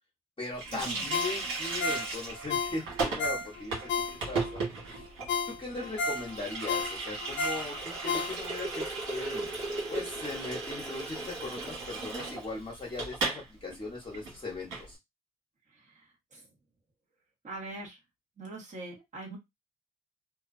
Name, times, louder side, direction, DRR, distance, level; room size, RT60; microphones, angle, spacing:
voice 1, 0.4-3.9 4.3-5.1 5.5-9.5 9.9-15.0, left 2 dB, 25° left, -3 dB, 1.0 m, -39 dB
Water tap faucet, 0.6-13.5 13.7-13.8 14.1-14.9, right 3 dB, 85° right, 1.3 m, -36 dB
Ringtone, 1.1-4.6 5.0-5.1 5.3-8.7 9.1-9.2, left 4 dB, 65° left, 0.5 m, -33 dB
voice 2, 17.4-18.0 18.4-19.4, right 2 dB, 40° right, -1 dB, 1.3 m, -41 dB
2.6 x 2.2 x 2.5 m, 0.19 s
cardioid pair, 90°, 20 cm